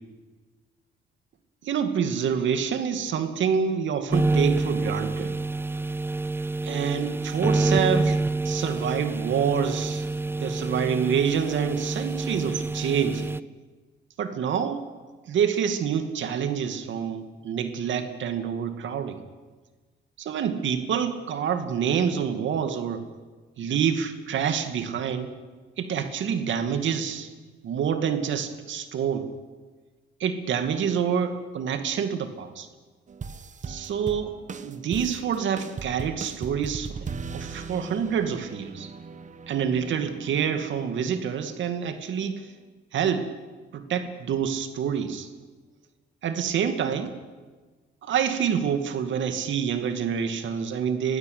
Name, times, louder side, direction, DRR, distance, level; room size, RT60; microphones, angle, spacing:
voice 1, 1.6-5.3 6.6-8.2 8.4-10.0 10.4-13.3 14.2-14.8 15.3-19.2 20.2-23.0 23.6-25.3 25.8-27.3 27.6-29.3 30.2-32.7 33.6-34.3 34.6-37.1 37.3-38.9 39.5-42.5 42.9-43.3 43.7-45.3 46.2-47.1 48.0-51.2, right 7 dB, 70° right, 8 dB, 2.4 m, -27 dB
sound 1, 4.1-13.4, right 2 dB, 10° right, 0.6 m, -27 dB
sound 2, 33.1-41.9 42.2-42.7 43.1-43.5 43.9-44.0, right 5 dB, 40° right, 1.3 m, -40 dB
21.5 x 16.0 x 9.7 m, 1.4 s
cardioid pair, 90°, 20 cm